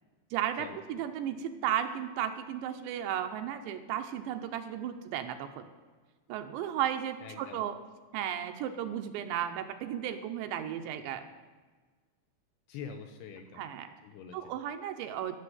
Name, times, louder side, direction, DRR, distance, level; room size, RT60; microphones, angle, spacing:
voice 1, 0.3-5.7 6.3-7.8 8.1-11.2 13.5-13.9 14.3-15.4, right 10 dB, 80° right, 7 dB, 2.9 m, -34 dB
voice 2, 7.2-7.6 12.7-13.6 14.0-14.6, left 6 dB, 75° left, 6 dB, 2.5 m, -45 dB
15.0 x 6.7 x 9.3 m, 1.4 s
omnidirectional pair, 5.4 m